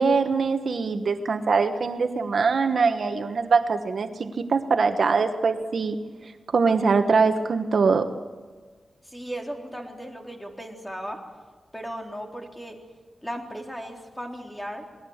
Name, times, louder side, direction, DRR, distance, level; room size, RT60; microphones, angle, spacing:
voice 1, 0.0-6.0 6.5-8.1, right 4 dB, 65° right, 7 dB, 1.3 m, -22 dB
voice 2, 9.0-11.2 11.7-12.8 13.2-14.9, equal, 5° left, 1 dB, 3.8 m, -36 dB
28.0 x 20.5 x 7.3 m, 1.4 s
wide cardioid pair, 115°, 0 cm